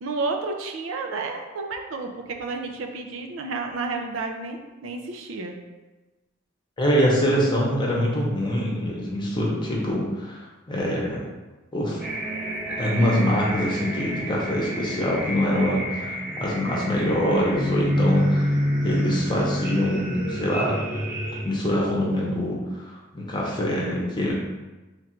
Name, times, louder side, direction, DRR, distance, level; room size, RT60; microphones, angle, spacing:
voice 1, 0.0-5.6, right 3 dB, 75° right, 3 dB, 0.4 m, -31 dB
voice 2, 6.8-10.4 10.7-11.2 11.7-12.0 12.7-18.5 18.8-20.8 21.4-22.6 22.9-24.3, equal, 25° left, -4 dB, 0.8 m, -24 dB
sound 1, 12.0-21.4, equal, 10° right, 0.9 m, -28 dB
3.2 x 2.5 x 4.3 m, 1.2 s
head